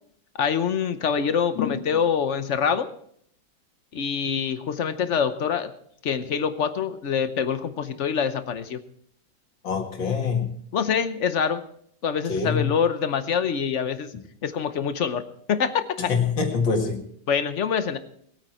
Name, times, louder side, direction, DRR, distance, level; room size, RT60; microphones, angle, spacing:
voice 1, 0.4-2.9 3.9-5.7 6.0-8.8 10.7-11.6 12.0-14.1 14.4-15.2 15.5-16.1 17.3-18.0, left 7 dB, 50° left, 10 dB, 0.9 m, -25 dB
voice 2, 9.6-10.5 12.3-12.7 16.1-17.0, left 5 dB, 80° left, 2 dB, 2.7 m, -25 dB
20.5 x 9.1 x 4.4 m, 0.66 s
omnidirectional pair, 2.0 m